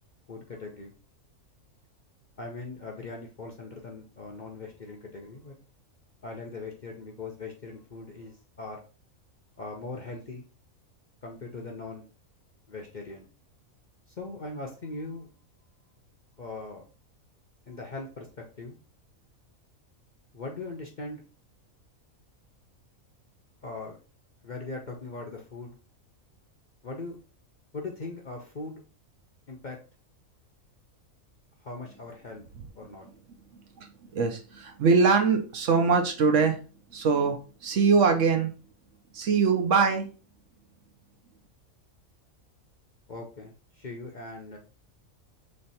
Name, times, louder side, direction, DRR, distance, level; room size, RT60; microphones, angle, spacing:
voice 1, 0.3-0.9 2.4-5.5 6.2-8.8 9.6-10.5 11.2-12.1 12.7-13.2 14.1-15.3 16.4-16.9 17.7-18.8 20.3-21.2 23.6-24.0 24.4-25.8 26.8-27.2 27.7-28.8 29.5-29.8 31.6-32.4 32.7-33.1 43.1-44.6, left 3 dB, 45° left, 0 dB, 0.6 m, -40 dB
voice 2, 34.1-36.6 36.9-38.5 39.1-40.1, right 5 dB, 65° right, 4 dB, 1.0 m, -22 dB
3.3 x 3.3 x 4.1 m, 0.35 s
omnidirectional pair, 1.5 m